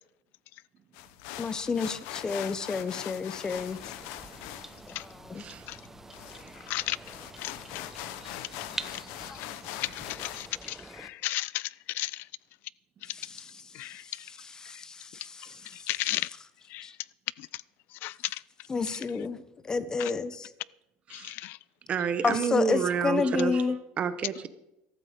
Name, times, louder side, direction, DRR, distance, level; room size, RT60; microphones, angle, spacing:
sound 1, 0.9-10.5, left 14 dB, 80° left, 0.8 m, -42 dB
voice 1, 1.4-3.8 4.9-5.4 9.3-9.4 13.1-13.9 14.2-16.3 16.8-16.9 18.7-20.5 22.2-23.8, left 4 dB, 15° left, 0.8 m, -31 dB
sound 2, 3.5-11.1, right 2 dB, 10° right, 0.7 m, -46 dB
voice 2, 5.3-5.7 9.9-10.0 15.5-15.6 21.1-21.3 21.9-24.5, right 7 dB, 30° right, 1.0 m, -30 dB
voice 3, 10.4-11.7 11.9-12.1 13.8-13.9 15.9-16.3 16.7-16.8 18.0-18.1 21.1-21.6, left 18 dB, 55° left, 0.4 m, -32 dB
14.5 x 13.0 x 5.1 m
cardioid pair, 150°, 4 cm